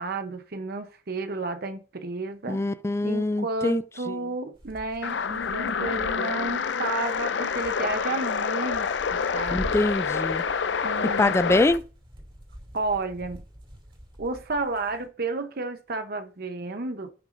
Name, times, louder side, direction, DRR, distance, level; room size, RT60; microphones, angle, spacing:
voice 1, 0.0-2.6 3.0-9.7 10.8-11.6 12.7-13.4 14.2-17.1, right 3 dB, 55° right, 0.8 m, -32 dB
voice 2, 2.5-3.8 9.5-10.4 11.2-11.8, left 2 dB, 15° left, 0.3 m, -24 dB
sound 1, 4.5-15.1, equal, 30° right, 2.9 m, -45 dB
sound 2, 5.0-11.8, left 6 dB, 75° left, 0.5 m, -27 dB
17.0 x 6.0 x 2.6 m
head